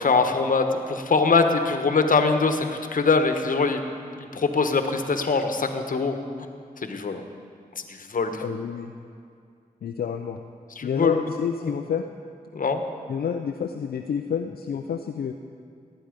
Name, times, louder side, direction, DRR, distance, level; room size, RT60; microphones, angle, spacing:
voice 1, 0.0-3.8 4.2-6.2 6.8-7.2 7.9-8.4 10.8-11.2 12.5-12.8, left 4 dB, 60° left, 6 dB, 1.2 m, -23 dB
voice 2, 8.4-8.9 9.8-10.4 10.8-12.0 13.1-15.3, left 7 dB, 80° left, 4 dB, 0.5 m, -29 dB
18.5 x 8.8 x 5.1 m, 2.3 s
cardioid pair, 50°, 16 cm